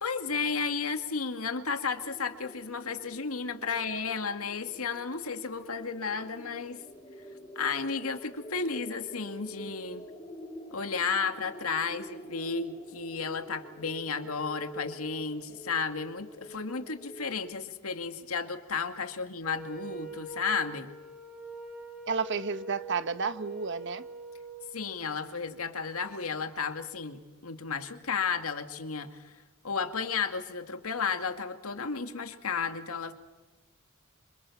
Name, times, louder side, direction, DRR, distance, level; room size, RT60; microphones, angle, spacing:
voice 1, 0.0-6.8 7.6-10.1 10.7-20.9 24.7-29.3 29.6-33.1, left 5 dB, 85° left, 2.2 m, -33 dB
sound 1, 2.0-17.4, equal, 20° left, 6.3 m, -47 dB
Wind instrument woodwind instrument, 19.4-24.7, right 2 dB, 5° right, 6.6 m, -44 dB
voice 2, 22.1-24.0, right 5 dB, 60° right, 1.3 m, -31 dB
27.0 x 27.0 x 7.3 m
head